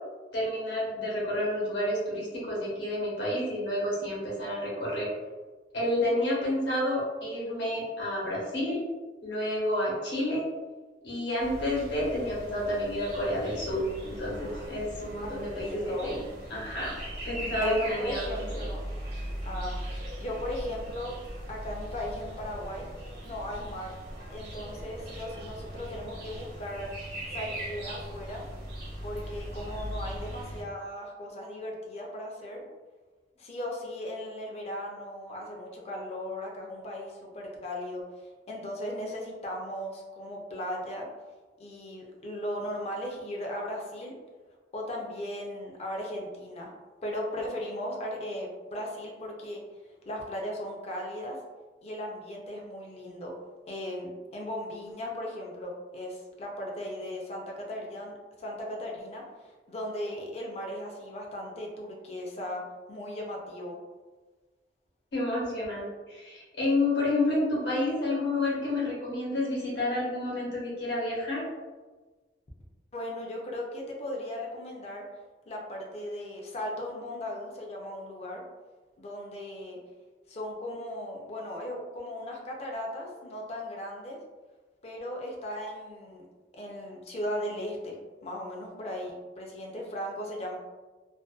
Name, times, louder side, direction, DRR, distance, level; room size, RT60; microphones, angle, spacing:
voice 1, 0.3-5.1 5.7-8.8 9.2-10.4 11.0-16.2 16.5-16.9 17.2-18.3 18.6-18.7 65.1-71.4, left 1 dB, 70° left, -5 dB, 1.0 m, -30 dB
sound 1, 11.4-30.6, right 1 dB, 65° right, 0.8 m, -39 dB
voice 2, 15.5-16.1 17.5-18.9 19.4-21.2 21.5-22.9 23.2-23.9 24.3-26.9 27.3-28.4 29.0-32.6 33.4-41.1 41.6-44.1 44.7-46.7 47.0-49.6 50.1-51.4 51.8-53.3 53.7-62.6 62.9-63.8 72.9-75.0 75.5-78.4 79.0-79.8 80.3-84.2 84.8-86.2 86.5-90.6, left 1 dB, 35° left, -1 dB, 0.5 m, -37 dB
2.5 x 2.1 x 2.3 m, 1.3 s
head